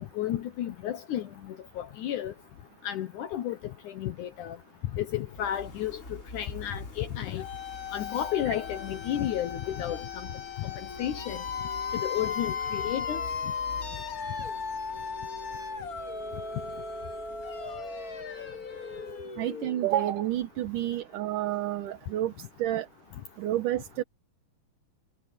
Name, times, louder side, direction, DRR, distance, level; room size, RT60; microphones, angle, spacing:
voice 1, 0.0-2.3 2.8-3.6 3.9-4.6 4.9-6.0 6.3-7.4 7.9-10.3 10.6-11.4 11.9-13.2, left 11 dB, 70° left, 2.3 m, -32 dB
sound 1, 5.2-19.1, left 2 dB, 20° left, 4.6 m, -48 dB
sound 2, 7.4-20.2, left 5 dB, 45° left, 1.2 m, -36 dB
voice 2, 19.4-22.3 22.6-22.9 23.4-24.0, right 13 dB, 70° right, 2.6 m, -29 dB
omnidirectional pair, 4.1 m